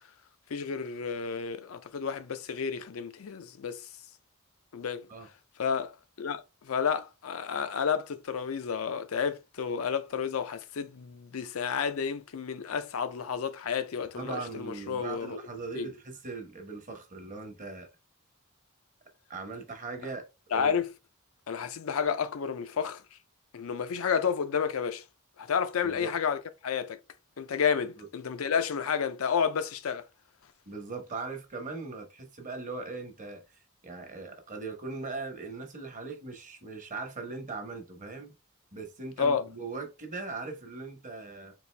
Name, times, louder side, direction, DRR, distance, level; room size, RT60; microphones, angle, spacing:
voice 1, 0.5-3.9 4.7-5.1 5.6-15.4 15.8-15.9 20.5-20.9 21.5-23.0 23.5-25.0 25.4-27.0 27.4-30.1 39.2-39.4, left 6 dB, 80° left, 0.5 m, -31 dB
voice 2, 14.1-17.9 19.3-20.3 20.5-20.8 25.8-26.1 28.0-28.1 30.7-38.3 38.7-41.5, right 3 dB, 40° right, 1.0 m, -40 dB
4.1 x 2.6 x 3.3 m
head